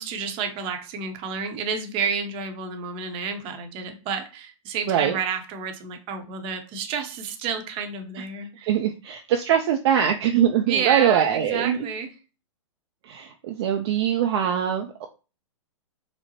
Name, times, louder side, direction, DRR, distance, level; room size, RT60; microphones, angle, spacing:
voice 1, 0.0-8.7 10.7-12.1, right 6 dB, 35° right, 6 dB, 0.7 m, -30 dB
voice 2, 4.9-5.2 8.6-11.9 13.0-15.1, right 9 dB, 55° right, 4 dB, 0.4 m, -22 dB
4.4 x 2.0 x 2.9 m, 0.33 s
hypercardioid pair, 115°, 17 cm